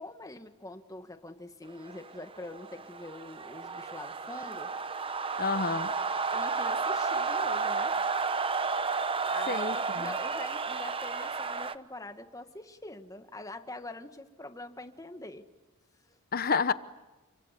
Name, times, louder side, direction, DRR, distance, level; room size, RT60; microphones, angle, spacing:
voice 1, 0.0-4.7 6.3-7.9 9.3-15.5 16.1-16.2, left 2 dB, 15° left, 1.7 m, -44 dB
sound 1, 1.8-11.7, right 4 dB, 25° right, 0.9 m, -32 dB
voice 2, 5.4-5.9 9.5-10.1 16.3-16.7, left 5 dB, 45° left, 1.1 m, -29 dB
30.0 x 24.0 x 8.3 m
head